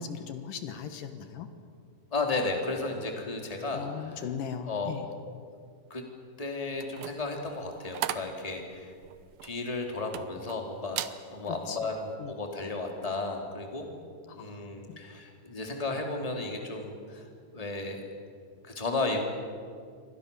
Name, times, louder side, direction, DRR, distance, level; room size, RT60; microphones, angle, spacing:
voice 1, 0.0-1.5 3.7-5.1 11.7-11.8 12.2-12.3 14.3-15.0, left 7 dB, 75° left, 8 dB, 3.0 m, -38 dB
voice 2, 2.1-4.3 4.6-5.2 5.9-6.0 6.4-8.9 9.4-13.9 14.3-18.1 18.6-19.2, left 3 dB, 10° left, 2 dB, 2.7 m, -34 dB
sound 1, 6.7-10.6 10.9-11.2 11.7-11.9, right 13 dB, 85° right, 2.7 m, -37 dB
28.5 x 23.5 x 7.0 m, 2.1 s
omnidirectional pair, 4.0 m